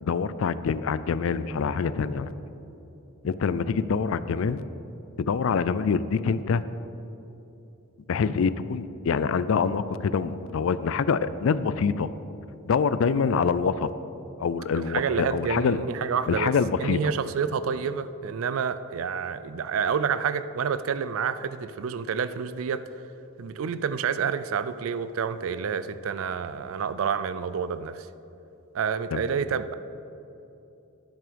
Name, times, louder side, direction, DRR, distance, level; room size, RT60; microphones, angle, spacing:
voice 1, 0.0-2.3 3.2-4.6 5.2-6.6 8.1-12.1 12.7-13.9 14.4-15.8 16.3-17.1 29.1-29.3, left 5 dB, 65° left, 15 dB, 0.4 m, -25 dB
voice 2, 14.7-16.5 16.8-22.8 23.4-28.1 28.7-29.7, right 6 dB, 75° right, 13 dB, 0.4 m, -28 dB
10.5 x 7.3 x 5.1 m, 2.9 s
head